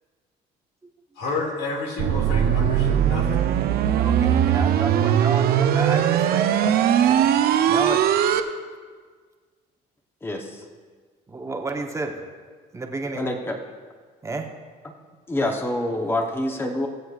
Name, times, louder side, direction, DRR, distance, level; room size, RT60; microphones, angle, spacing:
voice 1, 1.2-3.4, left 3 dB, 85° left, 0 dB, 2.2 m, -30 dB
sound 1, 2.0-8.4, right 9 dB, 65° right, 0.6 m, -20 dB
voice 2, 3.9-7.2 7.7-8.0 11.3-12.2 12.7-13.3 14.2-14.5, right 3 dB, 15° right, 3 dB, 1.0 m, -31 dB
voice 3, 10.2-10.6 13.1-13.6 14.8-14.9 15.3-16.9, left 1 dB, 15° left, 3 dB, 0.9 m, -26 dB
20.0 x 7.9 x 2.4 m, 1.5 s
cardioid pair, 110°, 17 cm